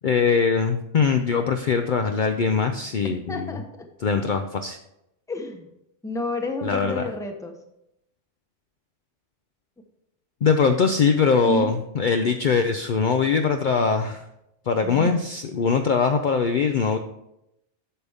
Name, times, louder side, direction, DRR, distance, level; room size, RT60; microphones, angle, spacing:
voice 1, 0.0-3.6 4.0-4.8 6.6-7.0 10.4-14.2 14.7-17.0, left 5 dB, 55° left, 6 dB, 0.6 m, -22 dB
voice 2, 3.0-3.9 5.3-5.7 6.0-7.6 11.4-11.7 14.8-15.2, left 1 dB, 5° left, 4 dB, 0.7 m, -31 dB
8.7 x 6.7 x 3.5 m, 0.83 s
omnidirectional pair, 1.2 m